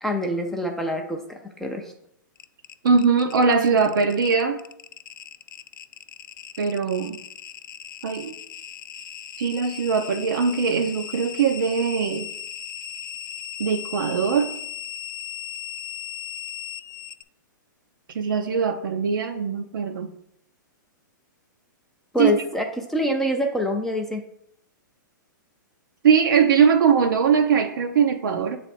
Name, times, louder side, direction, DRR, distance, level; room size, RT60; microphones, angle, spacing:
voice 1, 0.0-1.9 22.1-24.2, left 1 dB, 5° left, 1 dB, 0.4 m, -26 dB
sound 1, 2.4-17.2, left 10 dB, 75° left, 0.4 m, -37 dB
voice 2, 2.8-4.6 6.6-7.2 8.0-8.3 9.4-12.3 13.6-14.5 18.1-20.1 22.2-22.4 26.0-28.6, right 6 dB, 80° right, 4 dB, 0.6 m, -21 dB
7.1 x 3.3 x 4.2 m, 0.74 s
hypercardioid pair, 160°, 11 cm